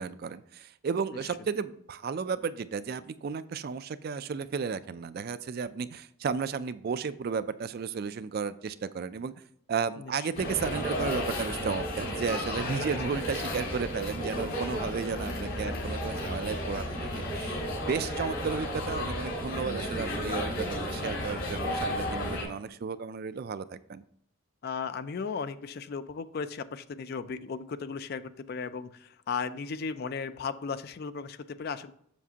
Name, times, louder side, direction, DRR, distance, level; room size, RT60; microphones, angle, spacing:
voice 1, 0.0-9.3 9.7-24.0, right 5 dB, 45° right, 13 dB, 0.3 m, -33 dB
sound 1, 10.3-22.4, left 1 dB, 65° left, 2.8 m, -33 dB
voice 2, 15.1-15.9 24.6-31.9, left 5 dB, 45° left, 13 dB, 0.4 m, -36 dB
7.2 x 6.7 x 2.8 m, 0.70 s
head